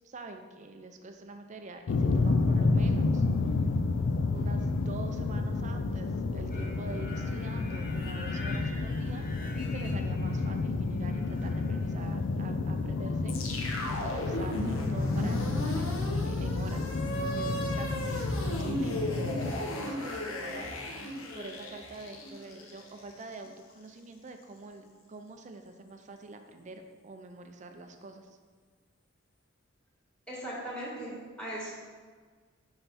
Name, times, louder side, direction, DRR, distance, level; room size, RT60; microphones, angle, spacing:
voice 1, 0.0-3.3 4.3-9.3 9.7-16.9 17.3-21.1 21.3-28.4, right 3 dB, 35° right, 6 dB, 0.5 m, -46 dB
sound 1, 1.9-19.5, left 3 dB, 60° left, 0.4 m, -30 dB
sound 2, 6.5-10.6 10.9-12.0, left 2 dB, 45° left, 1.1 m, -46 dB
sound 3, 13.3-23.5, left 1 dB, 80° left, 1.0 m, -35 dB
voice 2, 30.3-31.7, right 1 dB, 5° left, -7 dB, 1.9 m, -38 dB
5.7 x 5.5 x 4.1 m, 1.5 s
head